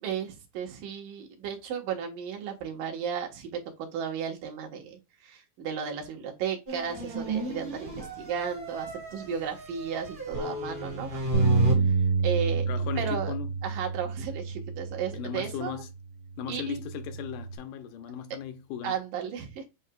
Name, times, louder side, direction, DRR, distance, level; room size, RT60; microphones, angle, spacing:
voice 1, 0.0-11.2 12.2-12.7 13.0-13.3 13.6-15.7 16.5-16.8 18.8-19.7, right 7 dB, 80° right, 2.8 m, -34 dB
sound 1, 6.7-11.7, equal, 35° right, 0.8 m, -33 dB
Bass guitar, 11.3-15.8 16.4-17.6, right 5 dB, 55° right, 1.2 m, -28 dB
voice 2, 12.7-13.6 15.1-15.9 16.4-18.9, left 9 dB, 80° left, 2.3 m, -37 dB
8.0 x 2.9 x 2.3 m
omnidirectional pair, 3.7 m